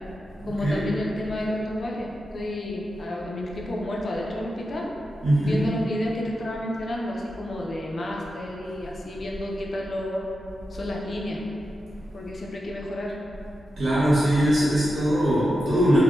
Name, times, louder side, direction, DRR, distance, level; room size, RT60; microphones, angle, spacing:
voice 1, 0.4-4.9 5.4-10.3 10.7-11.4 12.1-13.2, left 1 dB, 40° left, -3 dB, 0.4 m, -30 dB
voice 2, 5.2-5.6 13.7-16.0, equal, 65° right, -12 dB, 1.2 m, -21 dB
3.4 x 2.1 x 2.5 m, 2.7 s
wide cardioid pair, 145°, 0 cm